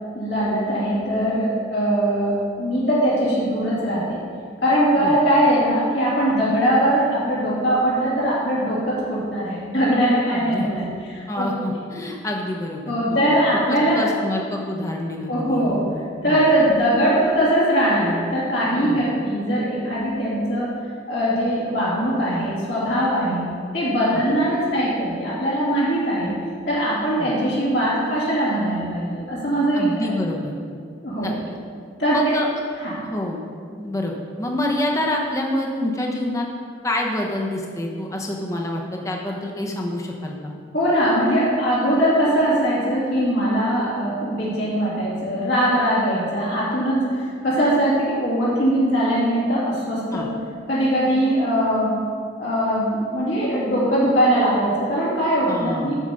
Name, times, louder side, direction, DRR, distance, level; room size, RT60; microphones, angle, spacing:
voice 1, 0.1-4.2 4.6-11.8 12.9-14.1 15.3-15.8 16.2-20.7 21.1-23.5 23.7-26.3 26.7-30.1 31.0-31.3 32.0-32.4 32.8-33.0 40.7-50.3 50.7-52.0 52.4-55.9, equal, 65° left, -8 dB, 2.7 m, -21 dB
voice 2, 10.3-10.7 11.3-13.4 13.9-15.8 16.3-16.4 18.8-19.0 24.1-24.2 27.2-27.3 29.7-30.5 31.2-31.6 32.1-32.5 33.0-33.4 33.8-36.5 36.8-40.5 50.1-50.3 55.5-55.9, left 1 dB, 15° left, 0 dB, 0.9 m, -27 dB
8.3 x 7.2 x 5.4 m, 2.2 s
head